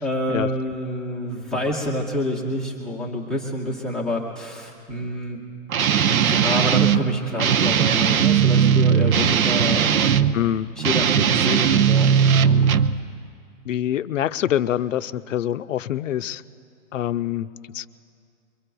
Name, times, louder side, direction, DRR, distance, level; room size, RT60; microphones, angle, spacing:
voice 1, 0.0-5.4 6.1-10.1 10.8-12.6, left 1 dB, ahead, -5 dB, 0.6 m, -27 dB
Guitar, 5.7-7.0 7.4-10.3 10.8-13.0, right 8 dB, 75° right, 0.7 m, -18 dB
voice 2, 10.3-10.7 13.7-16.4 16.9-17.5 17.7-17.9, left 11 dB, 65° left, 13 dB, 0.6 m, -25 dB
23.0 x 23.0 x 2.3 m, 2.3 s
hypercardioid pair, 145°, 43 cm